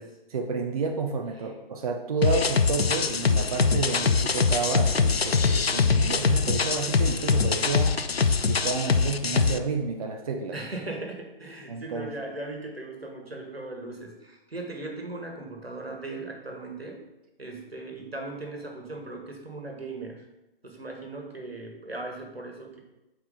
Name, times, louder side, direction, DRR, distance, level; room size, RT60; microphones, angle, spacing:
voice 1, 0.3-8.1 8.4-10.6 11.7-12.1, right 4 dB, 40° right, 4 dB, 0.6 m, -30 dB
sound 1, 2.2-9.6, left 5 dB, 90° left, 0.5 m, -23 dB
voice 2, 10.5-17.0 17.4-20.3 20.6-22.8, right 2 dB, 85° right, 2 dB, 1.6 m, -38 dB
7.1 x 4.6 x 4.0 m, 1.0 s
figure-of-eight pair, 135°, 30 cm